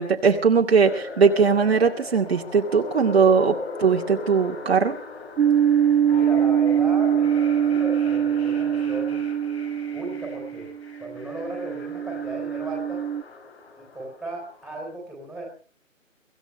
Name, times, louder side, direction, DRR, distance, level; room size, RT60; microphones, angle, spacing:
voice 1, 0.0-4.9, right 5 dB, 50° right, 1 dB, 2.3 m, -20 dB
sound 1, 0.8-14.9, left 3 dB, 50° left, 7.1 m, -39 dB
sound 2, 5.4-13.2, right 9 dB, 80° right, 0.7 m, -23 dB
voice 2, 6.1-9.3 9.9-10.7 11.0-13.0 13.8-15.5, right 2 dB, ahead, -2 dB, 3.8 m, -36 dB
24.5 x 16.5 x 3.2 m, 0.40 s
hypercardioid pair, 170°, 40 cm